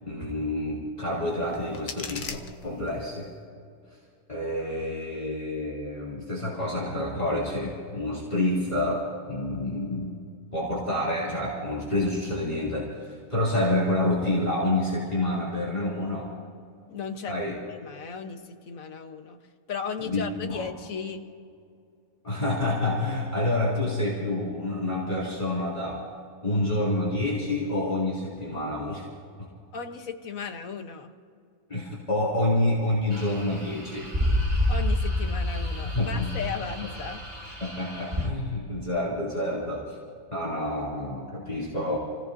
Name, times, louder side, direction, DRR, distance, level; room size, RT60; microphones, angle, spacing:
voice 1, 0.0-3.3 4.3-10.2 10.5-16.3 17.3-17.6 20.0-20.6 22.2-26.0 26.4-29.0 29.4-29.5 31.7-34.1 35.9-36.3 37.6-40.0 40.3-42.0, left 1 dB, 25° left, -6 dB, 3.2 m, -28 dB
sound 1, 1.3-3.3, left 5 dB, 50° left, 1.1 m, -40 dB
voice 2, 16.9-17.4 17.7-19.4 19.7-21.2 29.7-31.1 34.7-37.2, left 5 dB, 70° left, 6 dB, 1.5 m, -36 dB
sound 2, 33.1-38.3, left 1 dB, 30° right, 2.2 m, -29 dB
29.0 x 17.0 x 2.7 m, 2.3 s
omnidirectional pair, 1.5 m